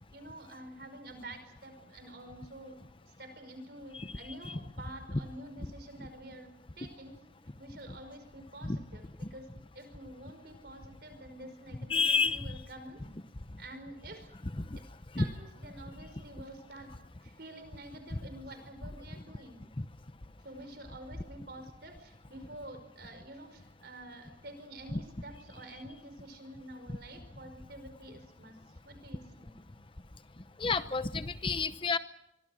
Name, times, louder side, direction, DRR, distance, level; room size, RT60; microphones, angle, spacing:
voice 1, 0.1-7.2 7.6-13.0 13.6-14.3 15.2-16.9 17.2-19.6 20.4-28.6 28.8-29.5, right 1 dB, 60° right, 9 dB, 5.2 m, -48 dB
voice 2, 11.9-12.6 14.6-14.8 15.1-15.2 19.8-19.9 24.9-25.0 30.4-32.0, left 4 dB, 30° left, 11 dB, 0.9 m, -30 dB
24.5 x 24.0 x 6.4 m, 0.83 s
head